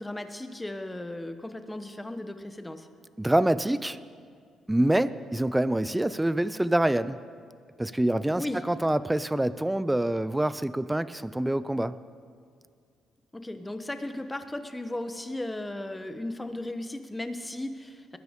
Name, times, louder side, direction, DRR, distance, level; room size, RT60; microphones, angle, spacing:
voice 1, 0.0-2.9 8.3-8.6 13.3-18.2, left 1 dB, 10° left, 8 dB, 1.0 m, -36 dB
voice 2, 3.2-4.0 4.7-7.2 7.8-12.0, right 1 dB, 10° right, 15 dB, 0.4 m, -26 dB
20.5 x 12.5 x 3.6 m, 2.1 s
cardioid pair, 90°, 0 cm